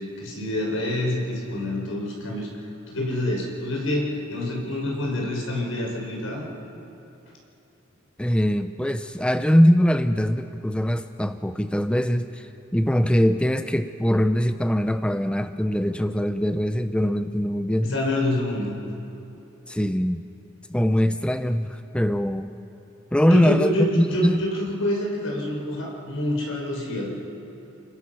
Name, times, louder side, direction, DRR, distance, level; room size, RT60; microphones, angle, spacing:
voice 1, 0.0-2.5 2.9-6.4 17.8-18.8 23.3-27.2, left 1 dB, 80° left, -1 dB, 5.3 m, -27 dB
voice 2, 8.2-17.9 19.7-20.2 20.7-22.5 23.1-24.4, equal, 5° left, 9 dB, 0.5 m, -22 dB
30.0 x 19.5 x 5.9 m, 2.8 s
head